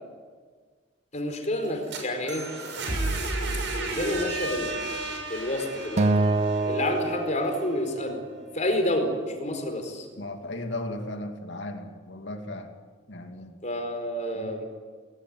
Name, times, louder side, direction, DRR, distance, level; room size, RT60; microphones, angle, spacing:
voice 1, 1.1-2.5 3.8-4.8 5.2-6.1 6.7-8.2 8.5-10.1 13.6-14.6, left 1 dB, 40° left, 4 dB, 4.5 m, -29 dB
sound 1, 1.6-7.5, right 2 dB, 65° right, 6.6 m, -32 dB
Acoustic guitar, 6.0-8.4, right 3 dB, 35° right, 0.8 m, -26 dB
voice 2, 10.2-12.7 13.1-13.6 14.3-14.6, left 1 dB, 65° left, 5 dB, 2.6 m, -36 dB
21.0 x 19.0 x 9.7 m, 1.5 s
head